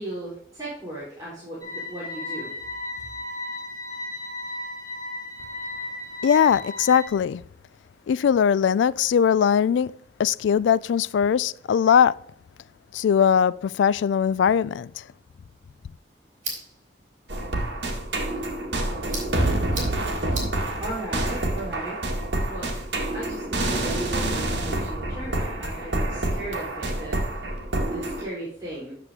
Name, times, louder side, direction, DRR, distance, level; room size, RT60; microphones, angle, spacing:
voice 1, 0.0-2.5 20.8-22.2 22.5-22.7 23.1-27.2 27.8-28.9, right 1 dB, 20° right, 3.7 m, -36 dB
sound 1, 1.6-7.1, left 2 dB, 25° left, 3.0 m, -35 dB
voice 2, 6.2-7.4 8.1-12.2 12.9-15.0, left 7 dB, 85° left, 0.3 m, -20 dB
sound 2, 15.4-23.3, right 3 dB, 45° right, 3.5 m, -42 dB
sound 3, 17.3-28.2, right 1 dB, 70° right, 2.0 m, -27 dB
9.9 x 6.7 x 3.6 m
head